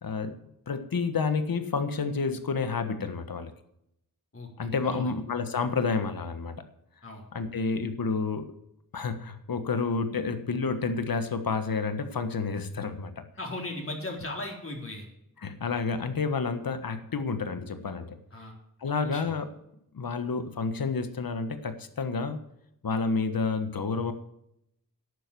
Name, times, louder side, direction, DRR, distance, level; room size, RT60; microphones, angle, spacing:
voice 1, 0.0-3.5 4.6-6.6 7.3-8.5 8.9-13.2 15.4-18.2 18.8-19.4 19.9-22.4 22.8-24.1, left 4 dB, 70° left, 9 dB, 1.5 m, -30 dB
voice 2, 4.8-5.1 7.0-7.2 13.4-15.1 18.3-18.6 19.0-19.2, left 2 dB, 35° left, 0 dB, 4.1 m, -37 dB
11.5 x 9.2 x 6.9 m, 0.79 s
wide cardioid pair, 65°, 36 cm